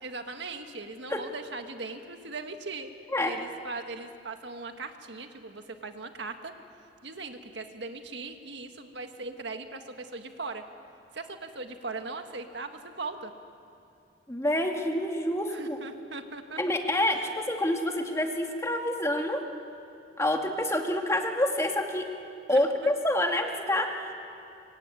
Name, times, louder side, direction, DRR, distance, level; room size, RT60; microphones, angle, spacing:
voice 1, 0.0-2.9 3.2-6.5 7.0-10.6 11.1-13.3 15.5-16.8 17.1-17.3 22.5-22.9 23.7-23.9, right 3 dB, 65° right, 6 dB, 1.8 m, -39 dB
voice 2, 14.3-15.8 16.6-19.4 20.2-22.1 22.5-23.9, left 1 dB, 15° left, 3 dB, 2.1 m, -27 dB
24.5 x 24.5 x 9.9 m, 2.5 s
head